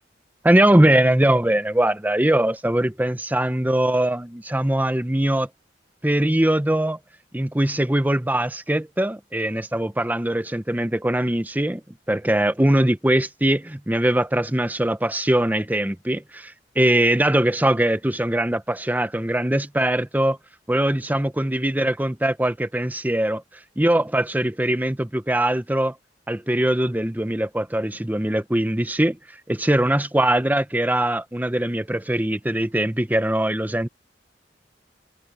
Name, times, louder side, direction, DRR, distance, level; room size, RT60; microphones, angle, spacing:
voice 1, 0.4-5.5 6.0-7.0 7.3-11.8 12.1-20.4 20.7-23.4 23.8-25.9 26.3-29.2 29.5-33.9, right 1 dB, 10° right, 0.8 m, -21 dB
head